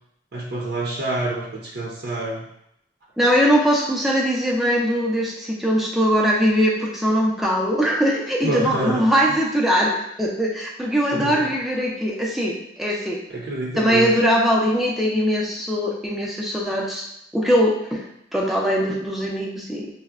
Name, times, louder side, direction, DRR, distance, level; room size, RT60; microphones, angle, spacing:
voice 1, 0.3-2.5 8.4-9.1 11.1-11.5 13.3-14.1, right 2 dB, 60° right, -3 dB, 0.6 m, -27 dB
voice 2, 3.2-13.2 13.8-17.1 17.3-18.0 18.3-19.9, equal, ahead, -3 dB, 0.4 m, -21 dB
5.5 x 2.0 x 2.3 m, 0.76 s
head